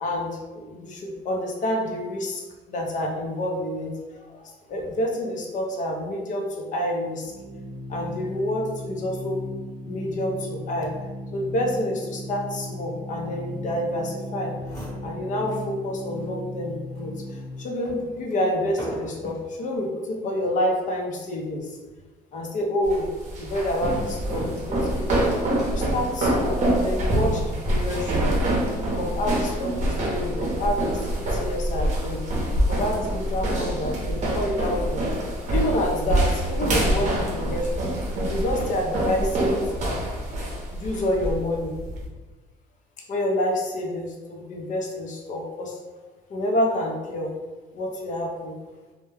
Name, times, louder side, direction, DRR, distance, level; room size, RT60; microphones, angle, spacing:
voice 1, 0.0-2.4 2.7-7.3 7.9-9.4 9.9-10.9 11.3-14.5 15.0-21.8 22.3-23.1 23.4-25.2 25.7-28.3 29.0-32.2 32.7-35.0 35.5-37.9 38.3-39.9 40.7-41.7 43.1-45.8 46.3-47.3 47.7-48.6, left 1 dB, 50° left, -1 dB, 0.6 m, -28 dB
Organ, 7.1-17.8, left 1 dB, 5° right, 0.4 m, -36 dB
sound 1, 14.3-14.4 14.6-15.7 16.2-16.3 16.9-19.5 20.3-20.7, right 1 dB, 20° left, 1.0 m, -41 dB
sound 2, 22.8-42.1, right 1 dB, 45° right, 0.7 m, -25 dB
2.2 x 2.1 x 3.1 m, 1.2 s
cardioid pair, 110°, 17 cm